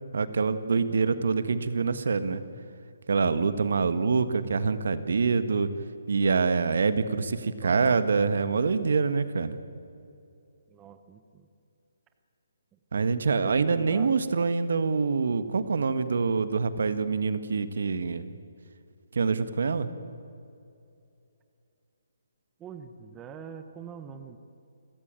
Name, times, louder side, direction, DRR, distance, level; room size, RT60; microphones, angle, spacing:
voice 1, 0.1-2.4 3.1-5.7 6.1-9.6 12.9-18.3 19.1-19.9, right 4 dB, 65° right, 12 dB, 1.6 m, -25 dB
voice 2, 7.6-8.7 10.7-11.5 13.4-14.1 22.6-24.4, right 7 dB, 10° right, 8 dB, 0.9 m, -45 dB
29.0 x 14.0 x 9.0 m, 2.6 s
hypercardioid pair, 170°, 0 cm